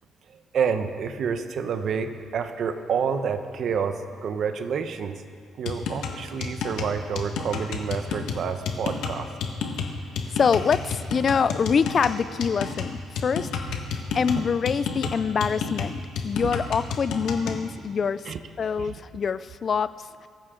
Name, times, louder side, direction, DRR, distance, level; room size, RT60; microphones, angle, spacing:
voice 1, 0.3-5.2 5.6-9.3 13.9-14.2 16.4-16.5 18.3-18.4 18.8-18.9, right 6 dB, 50° right, 8 dB, 1.0 m, -29 dB
sound 1, 5.6-17.6, left 5 dB, 85° left, 1.6 m, -31 dB
voice 2, 10.3-13.5 14.1-20.3, left 6 dB, 35° left, 15 dB, 0.4 m, -25 dB
22.5 x 14.5 x 3.8 m, 2.1 s
cardioid pair, 160°, 0 cm